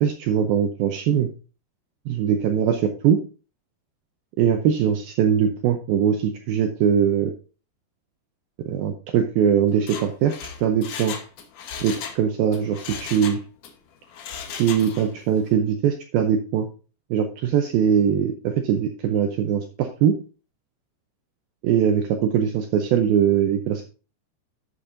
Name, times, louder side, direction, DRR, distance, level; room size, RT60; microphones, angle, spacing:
voice 1, 0.0-1.3 2.1-3.2 4.4-7.3 8.7-10.3 10.6-11.2 11.8-13.4 14.6-16.7 17.1-20.2 21.6-23.8, right 8 dB, 85° right, 6 dB, 2.1 m, -21 dB
Mechanisms, 9.7-12.2 12.5-13.7 14.1-15.2 15.5-15.6, left 7 dB, 70° left, 2.0 m, -36 dB
12.0 x 7.3 x 2.6 m, 0.35 s
omnidirectional pair, 5.1 m